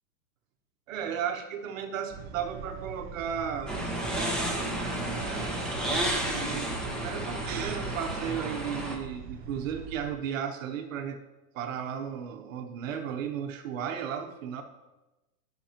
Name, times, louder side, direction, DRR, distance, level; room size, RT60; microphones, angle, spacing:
voice 1, 0.9-3.7 4.7-5.9 6.1-11.2 11.5-14.6, right 8 dB, 55° right, 5 dB, 1.2 m, -35 dB
sound 1, 2.1-10.1, right 5 dB, 20° right, 0.7 m, -42 dB
sound 2, 3.7-9.0, right 1 dB, ahead, 1.3 m, -32 dB
18.5 x 6.3 x 3.0 m, 1.0 s
hypercardioid pair, 145°, 48 cm